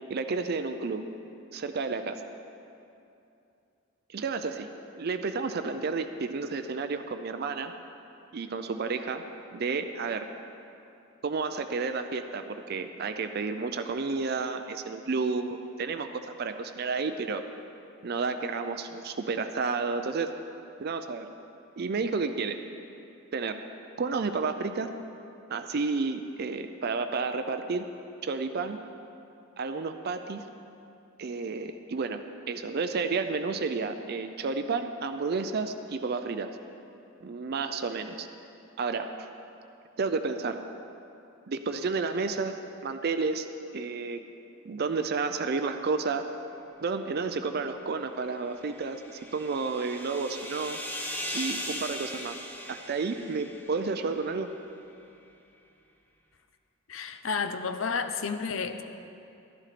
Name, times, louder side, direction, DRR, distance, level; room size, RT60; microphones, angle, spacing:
voice 1, 0.1-1.0 1.5-2.2 4.1-7.7 8.3-9.2 9.5-10.3 11.2-17.4 18.0-20.3 20.8-21.3 21.8-22.6 23.3-23.6 24.0-24.9 25.5-27.9 28.2-28.8 29.6-30.4 31.2-36.5 37.2-38.3 38.8-39.1 40.0-40.6 41.5-42.6 42.8-43.5 43.7-44.2 44.7-46.3 46.8-50.8 51.3-52.4 52.7-54.5, right 4 dB, 50° right, 8 dB, 0.5 m, -31 dB
sound 1, 48.5-54.1, left 1 dB, 10° left, 0.9 m, -39 dB
voice 2, 56.9-58.8, left 5 dB, 75° left, 9 dB, 0.6 m, -31 dB
12.5 x 12.0 x 4.2 m, 2.7 s
head